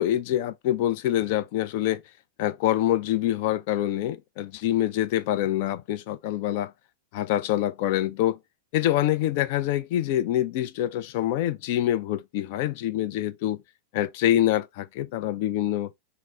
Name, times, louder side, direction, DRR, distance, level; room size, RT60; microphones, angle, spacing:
voice 1, 0.0-2.0 2.4-6.7 7.1-8.4 8.7-13.6 13.9-15.9, left 12 dB, 50° left, 0.4 m, -25 dB
4.0 x 2.0 x 3.2 m
figure-of-eight pair, 90°, 0 cm